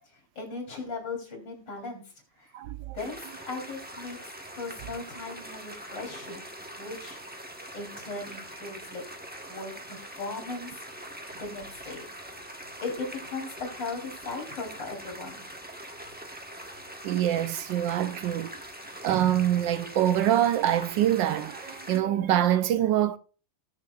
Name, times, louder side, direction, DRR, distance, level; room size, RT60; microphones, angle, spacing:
voice 1, 0.1-2.5 2.9-6.4 6.8-7.2 7.7-10.9 11.3-12.1 12.8-15.4, left 3 dB, 70° left, 4.0 m, -38 dB
voice 2, 2.5-3.0 17.0-18.5 19.0-23.2, right 11 dB, 80° right, 1.4 m, -25 dB
sound 1, 3.0-22.0, right 1 dB, 10° right, 0.7 m, -43 dB
19.5 x 6.7 x 2.4 m
omnidirectional pair, 2.0 m